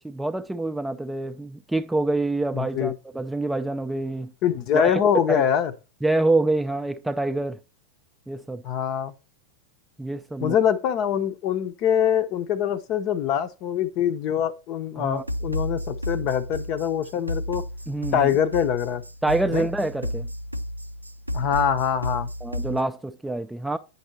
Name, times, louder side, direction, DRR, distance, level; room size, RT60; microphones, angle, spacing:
voice 1, 0.0-4.3 4.7-5.0 5.3-5.4 6.0-7.6 8.3-8.6 10.0-10.6 15.0-15.2 17.9-18.4 19.2-20.3 22.4-23.8, right 2 dB, 5° right, 0.4 m, -26 dB
voice 2, 2.5-2.9 4.4-5.7 8.6-9.1 10.4-17.6 18.1-19.0 19.5-19.7 21.3-22.3, left 9 dB, 40° left, 0.7 m, -24 dB
sound 1, 15.2-22.8, equal, 85° right, 0.3 m, -32 dB
9.2 x 5.4 x 2.7 m
figure-of-eight pair, 90°, 0 cm